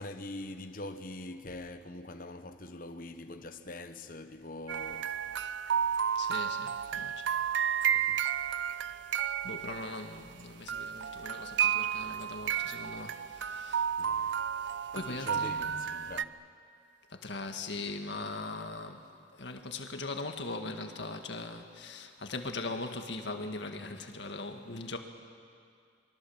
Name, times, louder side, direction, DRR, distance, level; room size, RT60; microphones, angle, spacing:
voice 1, 0.0-5.2 7.9-8.2 14.0-14.3 14.9-16.4, left 2 dB, 45° left, 1.1 m, -43 dB
sound 1, 4.7-10.4 10.7-16.3, right 8 dB, 75° right, 0.5 m, -32 dB
voice 2, 6.2-7.3 9.4-13.9 14.9-15.9 17.1-19.0 19.4-25.0, left 3 dB, 70° left, 1.9 m, -40 dB
25.5 x 23.5 x 7.3 m
head